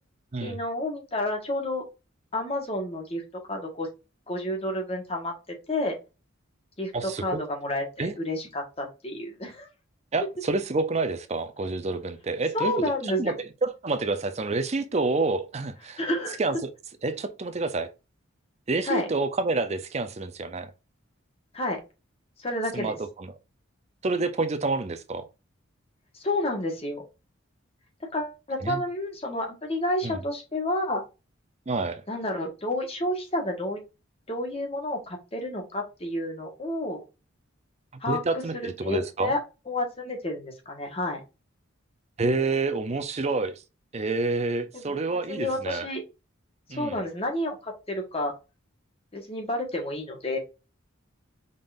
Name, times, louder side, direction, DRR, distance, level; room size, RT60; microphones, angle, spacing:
voice 1, 0.4-1.8 2.3-3.2 3.5-3.9 4.3-5.3 5.7-6.0 6.8-9.7 12.5-13.3 16.0-16.4 18.8-19.1 21.5-21.8 22.4-23.0 26.1-27.0 28.1-31.0 32.1-33.8 34.3-37.0 38.0-39.4 39.7-41.2 44.7-45.0 45.3-46.0 46.7-48.3 49.1-50.4, left 1 dB, 30° left, 1.4 m, -30 dB
voice 2, 6.9-7.4 8.0-8.1 10.1-12.7 13.2-13.3 13.6-16.0 16.4-16.6 17.0-17.9 18.7-20.7 22.7-23.3 24.0-25.3 28.6-28.8 30.0-30.2 31.7-32.0 38.1-39.3 42.2-43.6 43.9-45.9 46.7-47.0, right 3 dB, 30° right, 0.5 m, -28 dB
5.2 x 3.8 x 2.5 m
head